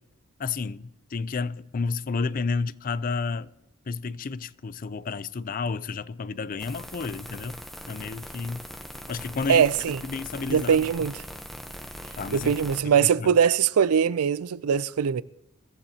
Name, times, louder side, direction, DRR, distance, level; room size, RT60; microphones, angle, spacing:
voice 1, 0.4-3.5 3.9-7.6 7.9-8.7 9.1-9.6 10.0-10.9 12.2-12.6 12.8-13.3, left 4 dB, 40° left, 0.4 m, -31 dB
sound 1, 6.6-12.8, equal, ahead, 0.8 m, -41 dB
voice 2, 9.5-10.0 10.5-11.2 12.3-15.2, right 7 dB, 85° right, 0.4 m, -22 dB
24.5 x 15.0 x 2.8 m
head